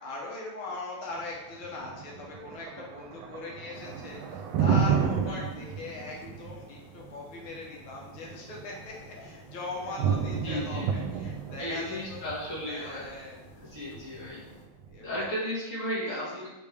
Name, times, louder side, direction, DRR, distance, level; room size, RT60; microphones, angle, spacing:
voice 1, 0.0-12.3 12.7-13.4 13.7-13.8 14.9-15.3 16.1-16.5, left 3 dB, 85° left, -3 dB, 1.9 m, -40 dB
Thunder, 1.2-15.2, right 7 dB, 80° right, 1.4 m, -32 dB
sound 1, 3.7-14.7, left 1 dB, 60° left, 0.5 m, -53 dB
voice 2, 5.2-5.6 9.7-9.8 10.4-11.1 11.6-13.1 13.6-14.4 15.0-16.5, equal, 40° left, -7 dB, 2.2 m, -35 dB
8.1 x 3.4 x 3.4 m, 1.0 s
omnidirectional pair, 2.2 m